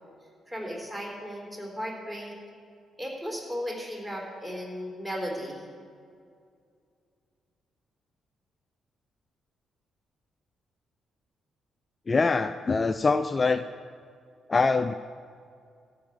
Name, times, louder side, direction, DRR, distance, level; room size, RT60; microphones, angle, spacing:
voice 1, 0.5-2.3 3.0-5.6, equal, 15° right, -1 dB, 3.7 m, -35 dB
voice 2, 12.1-13.7 14.5-14.9, left 4 dB, 30° left, 12 dB, 0.3 m, -24 dB
13.0 x 5.6 x 8.9 m, 2.3 s
figure-of-eight pair, 40°, 0 cm